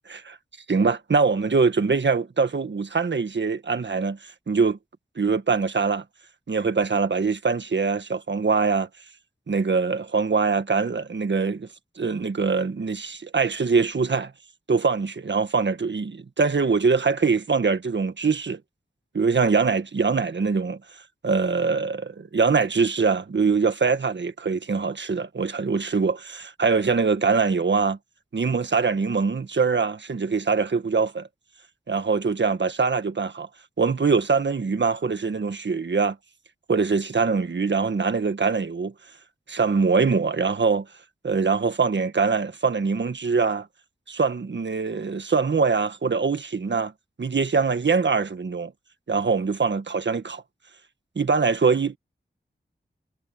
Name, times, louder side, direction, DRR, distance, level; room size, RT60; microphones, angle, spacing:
voice 1, 0.7-4.2 4.5-4.8 5.1-6.0 6.5-8.9 9.5-11.7 12.0-14.3 14.7-18.6 19.1-20.8 21.2-28.0 28.3-31.3 31.9-33.5 33.8-36.1 36.7-38.9 39.5-40.8 41.2-43.7 44.1-46.9 47.2-48.7 49.1-50.4 51.1-52.0, right 4 dB, 70° right, 1.6 m, -23 dB
wide cardioid pair, 55°, 20 cm